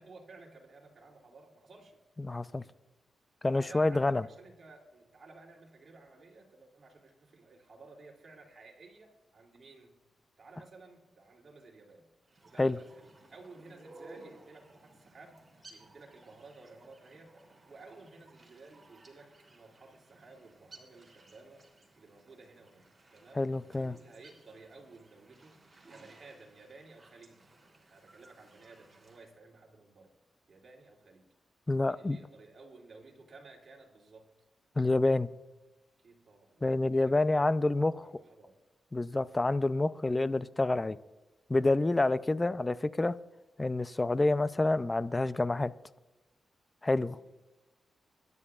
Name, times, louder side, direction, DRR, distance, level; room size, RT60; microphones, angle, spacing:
voice 1, 0.0-2.0 3.4-10.0 10.4-12.1 12.4-15.4 15.7-17.3 17.7-21.7 22.0-23.4 23.8-25.6 25.9-27.5 27.8-30.1 30.5-31.3 31.8-34.3 36.0-37.3 38.0-38.6 47.0-47.3, right 3 dB, 50° right, -1 dB, 2.8 m, -55 dB
voice 2, 2.2-2.6 3.4-4.3 12.6-12.8 23.4-24.0 31.7-32.2 34.8-35.3 36.6-38.1 38.9-41.0 41.5-43.1 43.6-45.7 46.8-47.2, left 2 dB, 20° left, 15 dB, 0.4 m, -28 dB
sound 1, 12.2-29.3, right 2 dB, 25° right, 3.2 m, -58 dB
24.0 x 10.5 x 2.4 m, 1.1 s
cardioid pair, 95°, 0 cm